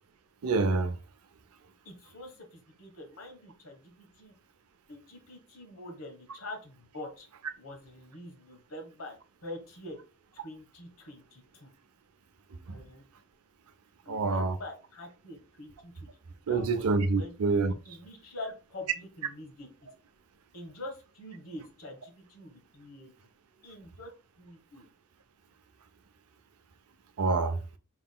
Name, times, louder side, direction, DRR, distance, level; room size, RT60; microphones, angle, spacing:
voice 1, 0.4-1.0 14.1-14.6 16.5-17.7 27.2-27.6, right 3 dB, 80° right, 0.5 m, -26 dB
voice 2, 1.8-4.3 4.9-7.3 7.6-9.1 9.4-10.0 10.3-11.7 12.7-13.0 14.0-16.1 16.5-16.9 17.1-17.4 17.9-19.7 20.5-23.1 23.6-24.1 24.4-24.8, left 1 dB, 70° left, 1.3 m, -45 dB
4.7 x 3.7 x 2.2 m
head